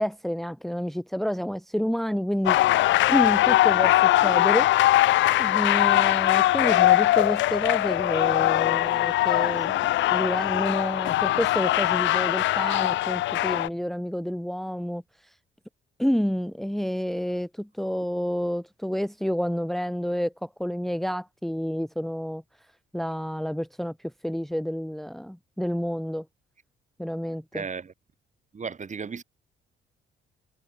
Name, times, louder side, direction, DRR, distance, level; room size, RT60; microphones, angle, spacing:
voice 1, 0.0-2.6 3.1-4.7 5.4-9.8 10.1-15.0 16.0-22.4 22.9-23.9 24.2-26.2 27.0-27.6, equal, ahead, 1.4 m, -29 dB
sound 1, 2.5-13.7, left 15 dB, 70° left, 0.4 m, -21 dB
voice 2, 27.5-27.9 28.5-29.2, right 5 dB, 40° right, 3.5 m, -35 dB
cardioid pair, 90°, 20 cm